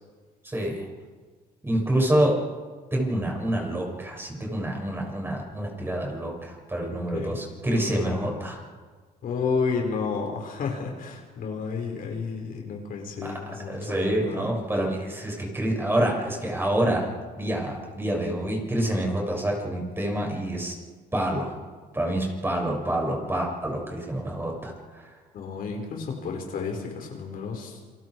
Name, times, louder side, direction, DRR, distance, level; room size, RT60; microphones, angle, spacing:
voice 1, 0.4-0.9 1.6-2.3 2.9-8.6 13.7-17.1 17.4-20.8 21.1-21.5 21.9-25.1, right 1 dB, 15° right, -1 dB, 6.6 m, -27 dB
voice 2, 7.7-8.3 9.2-14.5 25.3-27.8, left 5 dB, 60° left, 1 dB, 5.1 m, -31 dB
29.0 x 23.5 x 4.9 m, 1.5 s
cardioid pair, 110°, 17 cm